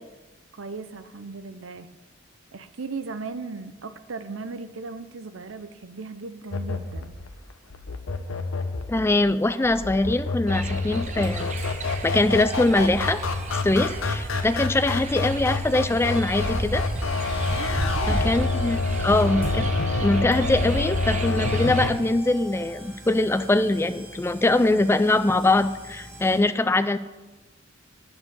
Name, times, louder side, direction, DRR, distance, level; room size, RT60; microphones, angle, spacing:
voice 1, 0.5-1.9 2.5-7.1 17.5-18.2, right 4 dB, 75° right, 11 dB, 0.7 m, -37 dB
sound 1, 6.5-21.9, left 3 dB, 85° left, 0.9 m, -28 dB
voice 2, 8.9-11.5 12.0-13.2 13.6-16.9 18.1-19.7 20.0-27.0, left 2 dB, 10° left, 12 dB, 0.3 m, -22 dB
sound 2, 10.4-26.4, right 1 dB, 10° right, 2.5 m, -43 dB
sound 3, 10.5-21.9, right 2 dB, 35° right, 0.8 m, -33 dB
9.3 x 6.9 x 6.9 m, 1.2 s
head